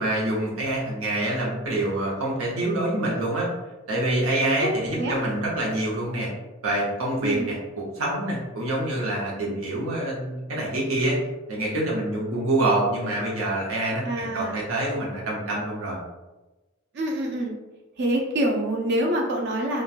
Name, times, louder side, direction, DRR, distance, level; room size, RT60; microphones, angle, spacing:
voice 1, 0.0-3.5 3.9-6.3 6.6-11.2 11.5-16.0, right 1 dB, 90° right, -5 dB, 0.9 m, -26 dB
voice 2, 4.6-5.2 7.2-7.5 14.0-14.6 16.9-17.6 18.0-19.8, right 1 dB, 55° right, 0 dB, 0.4 m, -26 dB
3.0 x 2.2 x 2.4 m, 1.1 s
head